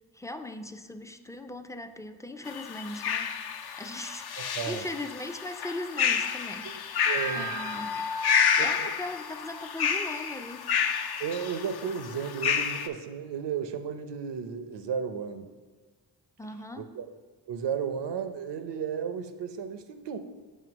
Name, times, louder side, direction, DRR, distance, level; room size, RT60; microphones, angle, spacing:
voice 1, 0.1-3.3 3.8-6.8 7.3-8.1 8.6-10.8 16.4-16.9, left 2 dB, 10° left, 7 dB, 0.4 m, -39 dB
sound 1, 2.5-12.9, left 7 dB, 60° left, 0.6 m, -29 dB
voice 2, 4.4-4.9 6.6-6.8 7.1-7.6 8.6-8.9 11.2-15.5 16.8-17.1 17.5-20.2, right 7 dB, 70° right, 9 dB, 0.7 m, -34 dB
7.6 x 2.8 x 6.0 m, 1.4 s
cardioid pair, 65°, 44 cm